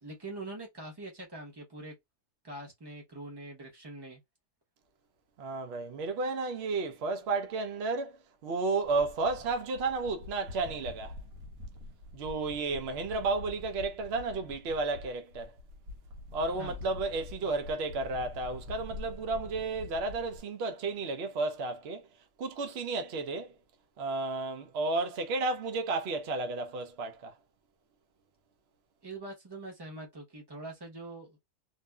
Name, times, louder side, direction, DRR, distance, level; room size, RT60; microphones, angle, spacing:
voice 1, 0.0-1.9 2.4-4.2 16.6-16.8 29.0-31.4, right 2 dB, 20° right, 0.8 m, -43 dB
voice 2, 5.4-11.1 12.1-15.5 16.3-22.1 22.4-23.5 24.0-27.3, right 3 dB, 60° right, 0.7 m, -32 dB
sound 1, 8.8-20.4, left 2 dB, 90° right, 1.1 m, -46 dB
2.6 x 2.5 x 2.2 m
omnidirectional pair, 1.5 m